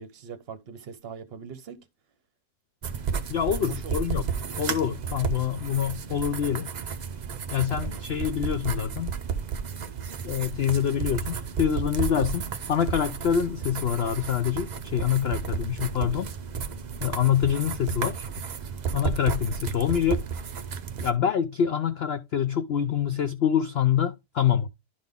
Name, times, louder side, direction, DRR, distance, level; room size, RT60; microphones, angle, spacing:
voice 1, 0.0-1.8 3.7-4.0 7.8-8.1 12.0-12.3, right 6 dB, 50° right, 0.9 m, -42 dB
sound 1, 2.8-21.1, right 6 dB, 80° right, 0.4 m, -33 dB
voice 2, 3.3-4.3 4.6-6.7 7.5-9.1 10.2-16.3 17.0-18.3 18.9-20.3 21.0-24.7, left 9 dB, 80° left, 0.5 m, -26 dB
11.5 x 3.8 x 3.5 m
omnidirectional pair, 1.7 m